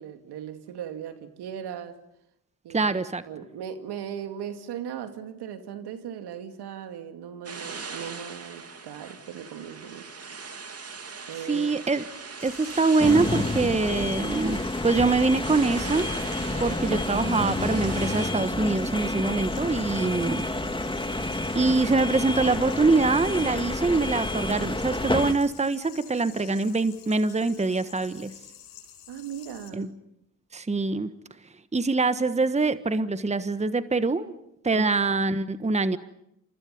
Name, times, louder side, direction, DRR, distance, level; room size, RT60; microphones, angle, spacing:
voice 1, 0.0-2.0 2.6-2.9 3.3-10.1 11.3-11.8 29.1-29.9 34.7-34.9, right 9 dB, 65° right, 2.4 m, -38 dB
voice 2, 2.7-3.2 11.5-12.0 12.4-16.1 16.6-20.4 21.5-28.3 29.7-29.9 30.5-31.1 31.7-34.3 34.6-36.0, right 3 dB, 15° right, 1.4 m, -24 dB
sound 1, 7.5-18.3, right 5 dB, 35° right, 2.8 m, -40 dB
sound 2, 12.4-29.7, left 10 dB, 80° left, 6.8 m, -49 dB
sound 3, 13.0-25.3, left 2 dB, 10° left, 2.2 m, -29 dB
29.0 x 28.5 x 5.4 m
hypercardioid pair, 50°, 43 cm